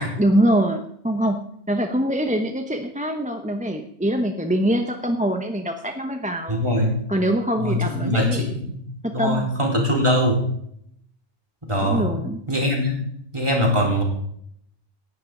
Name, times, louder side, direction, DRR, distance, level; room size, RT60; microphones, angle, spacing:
voice 1, 0.0-1.4 1.7-6.6 7.1-8.5 9.0-9.5 11.8-12.4, right 1 dB, 5° right, 5 dB, 0.8 m, -23 dB
voice 2, 6.5-7.0 7.6-8.7 9.1-10.4 11.6-12.1 12.5-13.0 13.3-14.0, equal, 25° right, -1 dB, 4.2 m, -22 dB
18.0 x 11.5 x 3.9 m, 0.69 s
omnidirectional pair, 1.2 m